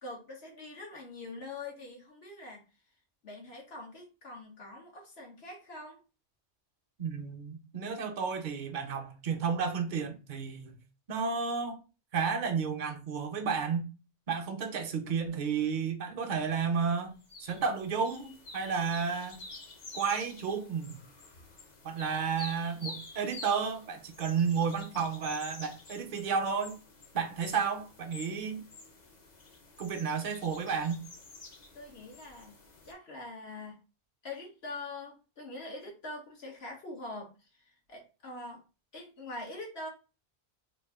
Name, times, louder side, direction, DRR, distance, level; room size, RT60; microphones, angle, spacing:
voice 1, 0.0-2.6 3.2-6.0 31.7-32.6 32.8-33.8 34.2-38.6 38.9-39.9, left 2 dB, 65° left, 1.2 m, -44 dB
voice 2, 7.0-10.8 11.1-11.8 12.1-13.9 14.3-19.4 19.9-21.0 21.8-26.8 27.1-28.6 29.8-31.0, right 6 dB, 50° right, 0.7 m, -32 dB
sound 1, 17.2-32.9, left 3 dB, 45° left, 0.8 m, -49 dB
3.0 x 2.4 x 3.5 m
omnidirectional pair, 1.1 m